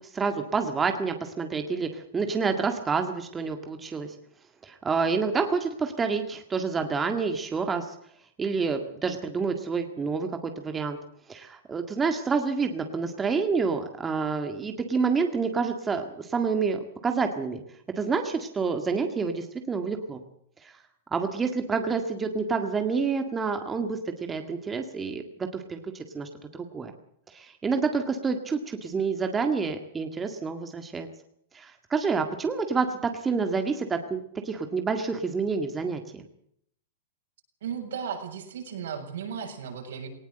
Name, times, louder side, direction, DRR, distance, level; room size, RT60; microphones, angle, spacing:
voice 1, 0.1-4.1 4.6-7.9 8.4-11.0 11.3-17.6 18.0-20.2 20.6-20.7 21.1-24.0 24.3-25.2 25.5-26.9 27.3-31.1 31.5-36.2, right 5 dB, 15° right, 6 dB, 1.8 m, -28 dB
voice 2, 37.6-40.1, right 7 dB, 75° right, 3 dB, 7.2 m, -35 dB
19.0 x 18.5 x 7.9 m, 0.70 s
supercardioid pair, 155°, 0 cm